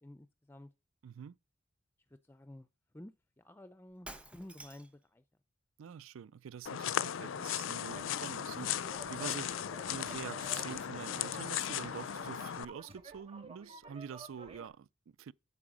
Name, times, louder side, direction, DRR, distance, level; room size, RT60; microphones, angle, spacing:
voice 1, 0.0-0.7 2.3-2.7 2.9-3.1 3.4-5.2, left 1 dB, 10° left, 0.4 m, -52 dB
voice 2, 1.0-1.3 5.8-8.8 9.1-15.3, right 7 dB, 80° right, 0.4 m, -46 dB
Shatter, 4.0-5.0, right 1 dB, 5° right, 0.9 m, -50 dB
sound 1, 6.7-12.7, left 9 dB, 75° left, 0.5 m, -37 dB
sound 2, 7.6-14.7, right 3 dB, 30° right, 1.6 m, -52 dB
8.7 x 6.9 x 5.0 m
head